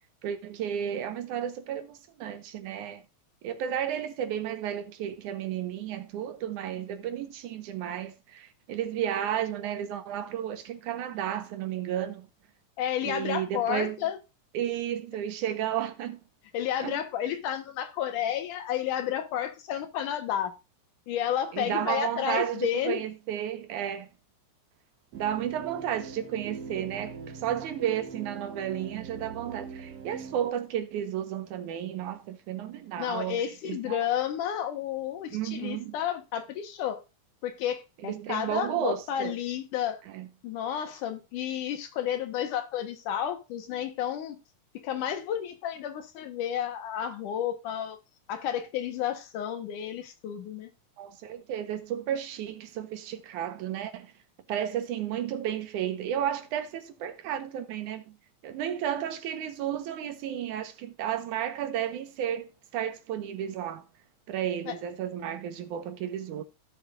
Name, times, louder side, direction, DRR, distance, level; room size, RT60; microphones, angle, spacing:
voice 1, 0.2-3.0 3.4-12.3 13.0-14.0 14.5-16.2 16.8-17.0 21.5-24.1 25.1-34.0 35.3-35.9 38.0-39.4 40.1-40.3 51.0-54.1 54.5-58.2 58.4-63.8 64.3-66.4, right 10 dB, 80° right, 2.6 m, -33 dB
voice 2, 12.8-14.2 16.5-20.5 21.1-23.0 33.0-37.0 37.4-40.0 40.4-44.4 44.8-48.0 48.3-50.7 64.7-64.8, left 10 dB, 85° left, 2.8 m, -31 dB
sound 1, 25.1-30.5, right 5 dB, 60° right, 1.7 m, -42 dB
16.0 x 6.8 x 2.5 m
omnidirectional pair, 3.5 m